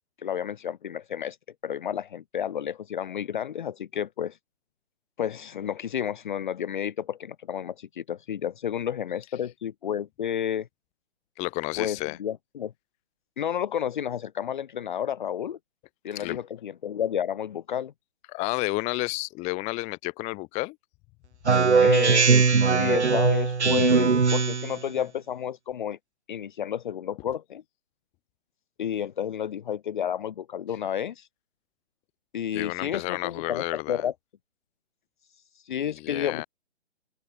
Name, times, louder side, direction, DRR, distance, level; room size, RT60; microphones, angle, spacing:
voice 1, 0.2-1.4 1.6-4.4 5.2-10.7 11.8-12.7 13.4-15.6 16.0-17.9 21.8-26.0 26.3-27.6 28.8-31.3 32.3-34.1 35.5-36.4, left 9 dB, 45° left, 1.3 m, -31 dB
voice 2, 11.4-12.2 16.1-16.4 18.3-20.8 32.5-34.0 35.8-36.5, left 25 dB, 20° left, 2.5 m, -31 dB
Speech synthesizer, 21.4-24.8, right 5 dB, 80° right, 1.3 m, -20 dB
open air
figure-of-eight pair, 135°, 33 cm